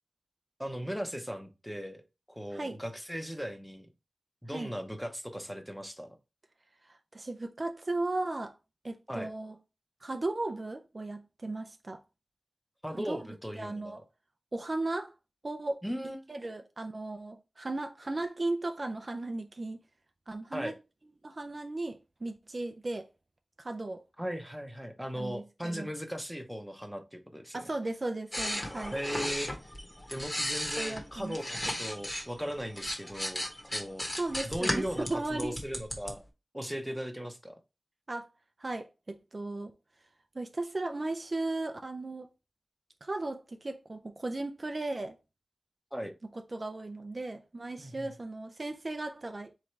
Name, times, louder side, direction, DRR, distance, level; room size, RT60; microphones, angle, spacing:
voice 1, 0.6-2.0 2.3-3.9 4.4-6.1 9.1-9.3 12.8-14.0 15.8-16.3 20.5-20.7 24.2-27.6 28.9-29.8 30.1-33.5 33.7-34.0 34.5-36.2 36.5-37.6 45.9-46.1 47.8-48.1, equal, ahead, 0.8 m, -38 dB
voice 2, 6.8-8.6 8.8-9.6 10.0-12.0 12.9-13.3 13.6-14.0 14.5-15.1 15.4-15.8 16.3-19.8 20.3-20.7 21.2-23.1 23.6-24.0 25.2-25.9 27.5-28.9 30.8-31.4 34.2-35.6 38.1-38.3 38.6-39.7 40.3-42.3 43.0-45.2 46.3-49.5, right 2 dB, 40° right, 0.4 m, -36 dB
sound 1, 28.3-32.3 32.6-36.1, equal, 20° left, 1.1 m, -35 dB
3.7 x 3.1 x 4.5 m
wide cardioid pair, 95°, 0 cm